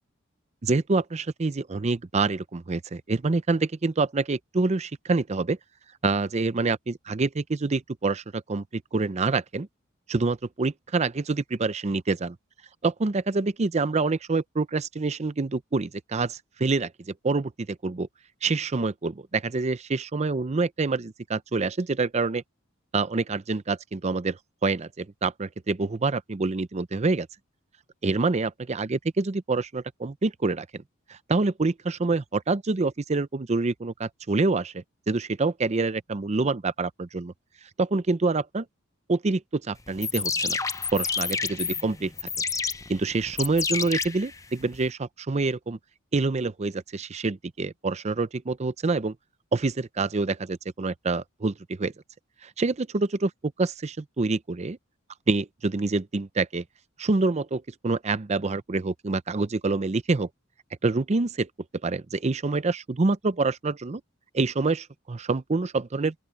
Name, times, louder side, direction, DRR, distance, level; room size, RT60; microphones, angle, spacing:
voice 1, 0.6-5.6 6.0-9.7 10.1-12.4 12.8-18.1 18.4-22.4 22.9-27.3 28.0-30.7 31.1-37.3 37.8-38.7 39.1-40.6 40.9-42.1 42.9-45.8 46.1-49.2 49.5-51.9 52.4-53.3 53.6-54.8 55.3-56.6 57.0-60.3 60.8-61.5 61.8-64.0 64.3-66.1, right 3 dB, 35° right, 0.5 m, -26 dB
sound 1, 39.9-44.9, left 5 dB, 15° left, 0.7 m, -30 dB
open air
head